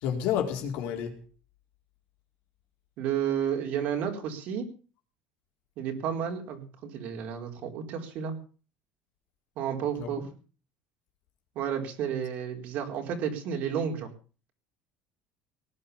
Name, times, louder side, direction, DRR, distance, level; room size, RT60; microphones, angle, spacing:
voice 1, 0.0-1.2 10.0-10.1, left 9 dB, 65° left, 4 dB, 4.2 m, -30 dB
voice 2, 3.0-4.7 5.8-8.4 9.6-10.2 11.5-14.1, right 8 dB, 55° right, 4 dB, 4.3 m, -31 dB
19.0 x 10.0 x 7.0 m, 0.38 s
cardioid pair, 155°, 3 cm